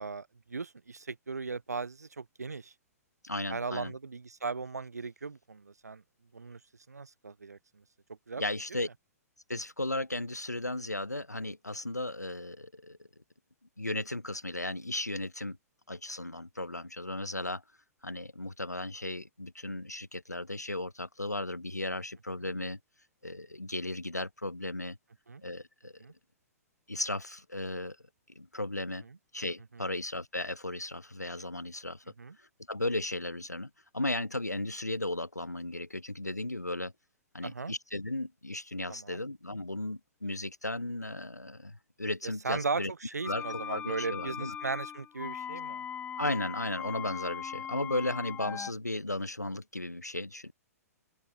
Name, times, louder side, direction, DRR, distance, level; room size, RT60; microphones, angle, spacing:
voice 1, 0.0-2.7 3.5-6.0 6.3-6.6 6.9-7.6 8.1-8.4 25.3-25.4 26.0-26.1 29.7-29.9 32.2-32.4 37.4-37.7 38.9-39.2 42.2-45.8, right 4 dB, 75° right, 0.7 m, -37 dB
voice 2, 3.2-3.9 8.4-8.9 9.5-13.0 13.8-15.6 15.9-17.6 18.0-22.8 23.2-25.0 25.4-26.0 26.9-28.0 28.3-29.1 29.3-32.0 32.4-36.9 37.3-42.9 43.3-44.5 46.2-50.5, left 2 dB, 90° left, 0.9 m, -35 dB
sound 1, 43.2-48.7, left 8 dB, 15° left, 2.9 m, -39 dB
open air
figure-of-eight pair, 110°, 9 cm